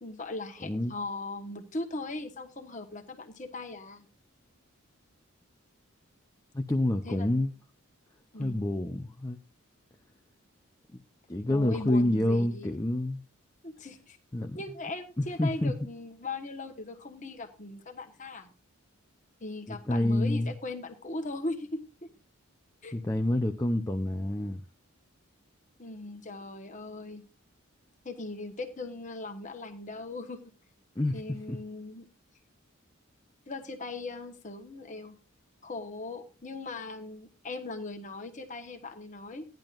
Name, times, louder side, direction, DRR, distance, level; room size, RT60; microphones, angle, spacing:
voice 1, 0.0-4.1 7.0-7.5 8.3-8.6 11.5-12.7 13.6-14.2 14.6-18.5 19.4-22.1 22.8-22.9 25.8-27.2 28.0-30.4 31.1-32.1 33.5-35.2 35.6-39.4, left 2 dB, 35° left, 1.3 m, -39 dB
voice 2, 0.6-0.9 6.5-7.5 8.4-9.4 10.9-11.0 11.3-13.2 14.3-14.6 15.2-15.7 19.7-20.5 22.9-24.6 31.0-31.2 31.5-31.6, left 1 dB, 15° left, 0.6 m, -28 dB
16.5 x 10.5 x 2.5 m
head